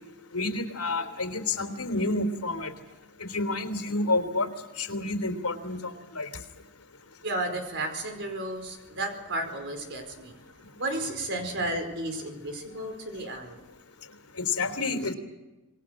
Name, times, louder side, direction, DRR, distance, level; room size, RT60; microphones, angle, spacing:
voice 1, 0.3-2.7 3.2-4.5 4.8-6.3 14.4-15.1, left 3 dB, 85° left, 6 dB, 3.3 m, -29 dB
voice 2, 7.2-10.3 10.8-13.6, right 1 dB, 55° right, 5 dB, 4.9 m, -33 dB
27.0 x 21.5 x 6.5 m, 1.1 s
head